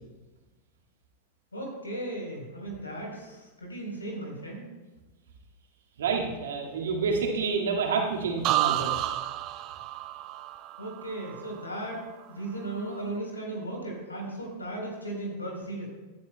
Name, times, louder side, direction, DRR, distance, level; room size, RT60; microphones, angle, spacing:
voice 1, 1.5-4.6 10.8-12.0 12.3-15.9, right 1 dB, 85° left, 0 dB, 3.7 m, -36 dB
voice 2, 6.0-8.9, right 5 dB, 70° right, 1 dB, 1.9 m, -28 dB
sound 1, 8.4-12.3 12.6-13.1, right 14 dB, 40° right, 0.6 m, -31 dB
16.5 x 12.0 x 2.2 m, 1.2 s
figure-of-eight pair, 90°, 0 cm